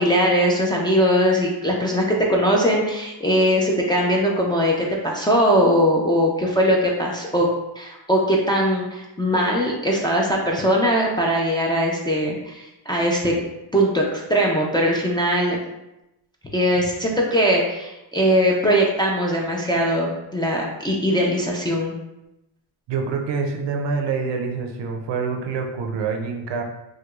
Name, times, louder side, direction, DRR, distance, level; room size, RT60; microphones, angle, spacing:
voice 1, 0.0-7.5 7.8-13.4 13.7-15.6 16.5-21.9, equal, 10° left, -3 dB, 0.4 m, -20 dB
voice 2, 22.9-26.6, right 5 dB, 65° right, 3 dB, 0.6 m, -26 dB
4.5 x 2.2 x 2.4 m, 0.91 s
cardioid pair, 110°, 47 cm